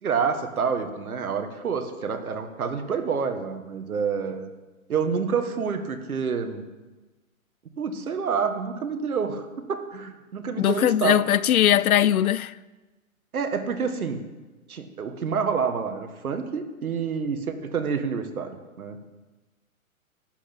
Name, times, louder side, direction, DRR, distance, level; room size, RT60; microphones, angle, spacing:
voice 1, 0.0-4.5 4.9-6.6 7.8-11.2 13.3-14.2 14.7-19.0, right 6 dB, 80° right, 1.8 m, -28 dB
voice 2, 10.6-12.5, left 11 dB, 80° left, 0.6 m, -20 dB
12.5 x 6.2 x 8.8 m
hypercardioid pair, 160°, 43 cm